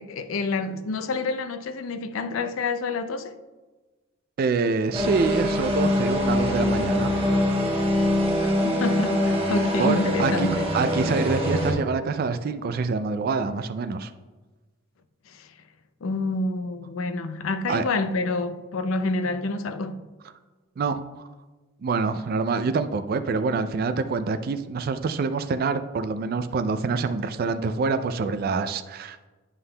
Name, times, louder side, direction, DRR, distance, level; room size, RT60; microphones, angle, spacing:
voice 1, 0.0-3.4 8.4-10.7 15.3-15.5 16.0-20.0, left 3 dB, 85° left, 0.5 m, -28 dB
voice 2, 4.4-7.2 9.8-10.5 10.7-14.1 17.7-17.8 20.8-21.3 21.8-29.3, right 4 dB, 45° right, 0.3 m, -26 dB
sound 1, 4.9-11.7, left 1 dB, 30° right, 1.1 m, -24 dB
9.6 x 5.5 x 2.2 m
head